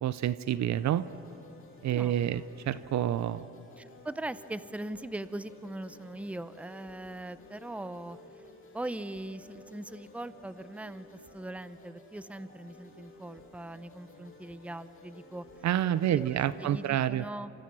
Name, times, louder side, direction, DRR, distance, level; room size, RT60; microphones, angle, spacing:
voice 1, 0.0-1.1 1.8-2.4 2.7-3.5 15.6-17.2, right 11 dB, 65° right, 15 dB, 0.6 m, -28 dB
sound 1, 0.7-16.9, left 1 dB, 45° left, 7.3 m, -54 dB
voice 2, 1.9-2.4 3.8-8.2 8.7-15.4 15.8-17.5, right 1 dB, 5° right, 14 dB, 0.7 m, -41 dB
27.5 x 26.0 x 6.2 m, 2.9 s
cardioid pair, 90°, 30 cm